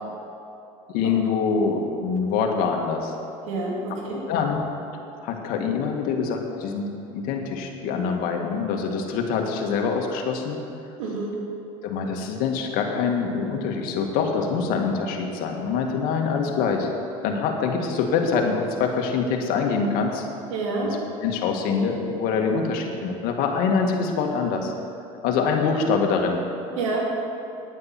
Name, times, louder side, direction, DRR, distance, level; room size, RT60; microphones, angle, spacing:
voice 1, 0.9-3.1 4.3-4.6 5.2-10.6 11.8-16.9 17.2-20.3 20.8-24.7 25.2-26.4, left 5 dB, 70° left, 2 dB, 1.9 m, -25 dB
voice 2, 3.5-4.2 11.0-11.3 20.5-20.9 26.8-27.1, right 3 dB, 90° right, -3 dB, 2.9 m, -28 dB
10.0 x 9.7 x 7.6 m, 2.8 s
supercardioid pair, 90°, 16 cm